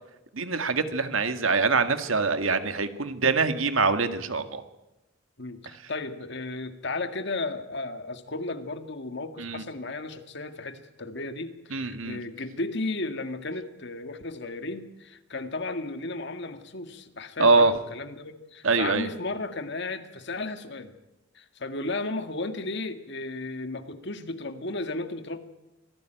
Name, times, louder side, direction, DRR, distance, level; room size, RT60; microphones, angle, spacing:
voice 1, 0.3-4.6 9.4-9.6 11.7-12.2 17.4-17.7 18.6-19.1, right 4 dB, 80° right, 9 dB, 1.8 m, -24 dB
voice 2, 5.4-20.9 21.3-25.4, left 2 dB, 60° left, 9 dB, 1.9 m, -34 dB
25.5 x 17.5 x 9.1 m, 0.97 s
head